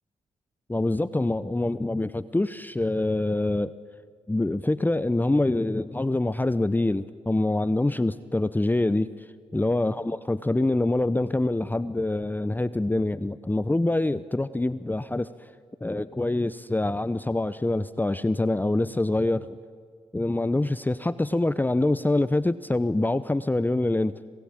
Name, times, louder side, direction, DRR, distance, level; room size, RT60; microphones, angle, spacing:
voice 1, 0.7-3.7 4.3-9.1 9.5-15.5 15.8-19.6 20.1-24.1, left 2 dB, 15° left, 15 dB, 0.8 m, -25 dB
27.0 x 20.5 x 8.7 m, 2.1 s
supercardioid pair, 50°, 13 cm